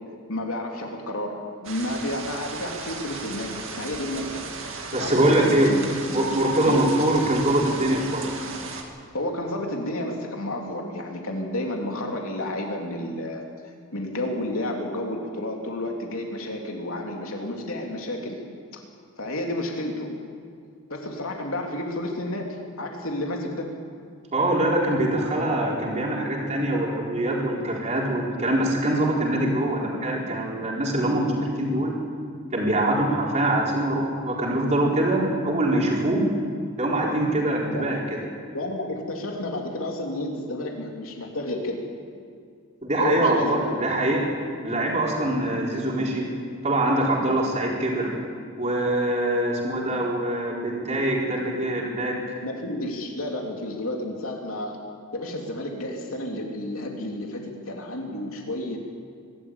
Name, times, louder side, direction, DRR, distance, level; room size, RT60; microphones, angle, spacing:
voice 1, 0.3-4.4 5.0-5.9 6.7-6.9 9.1-13.4 13.9-18.4 18.7-18.8 19.2-20.1 20.9-23.7 37.7-37.9 38.5-41.8 43.0-43.6 52.4-54.8 55.1-58.8, left 1 dB, 70° left, 1 dB, 3.4 m, -31 dB
sound 1, 1.6-8.8, right 4 dB, 60° right, 2.3 m, -36 dB
voice 2, 4.9-5.7 6.1-8.3 24.3-32.0 32.5-36.3 36.8-38.2 42.8-44.2 44.6-46.3 46.6-48.1 48.6-52.2, right 1 dB, 30° right, -3 dB, 4.3 m, -23 dB
23.5 x 13.0 x 8.9 m, 2.3 s
head